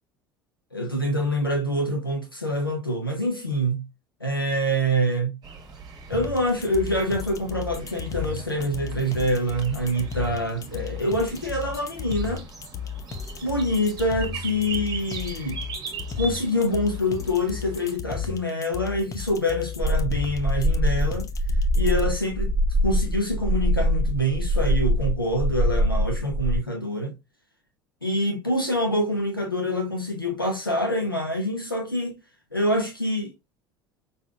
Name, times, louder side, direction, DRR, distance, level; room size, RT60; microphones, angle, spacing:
voice 1, 0.7-3.8 4.2-5.4 6.1-12.4 13.4-15.6 16.2-21.3 21.7-22.5 22.8-27.1 28.0-32.2 32.5-33.3, equal, 90° left, 0.9 m, -26 dB
sound 1, 5.4-18.0, right 5 dB, 35° right, 1.7 m, -40 dB
sound 2, 6.1-22.1, left 7 dB, 30° left, 0.8 m, -34 dB
sound 3, 19.8-26.6, equal, 10° right, 0.5 m, -23 dB
5.6 x 3.9 x 2.4 m
figure-of-eight pair, 65°, 11 cm